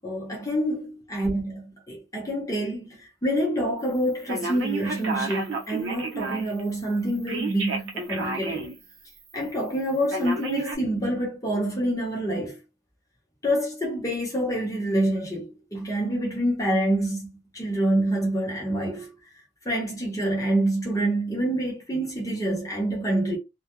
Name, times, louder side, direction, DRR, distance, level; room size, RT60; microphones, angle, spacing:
voice 1, 0.0-2.9 3.2-8.7 9.3-12.5 13.4-17.3 17.5-19.1 19.6-23.4, right 1 dB, 20° left, 0.8 m, -27 dB
Telephone, 4.3-6.6 7.3-8.8 9.2-9.3 10.1-10.8, right 3 dB, 90° right, 0.7 m, -31 dB
2.2 x 2.1 x 2.9 m
head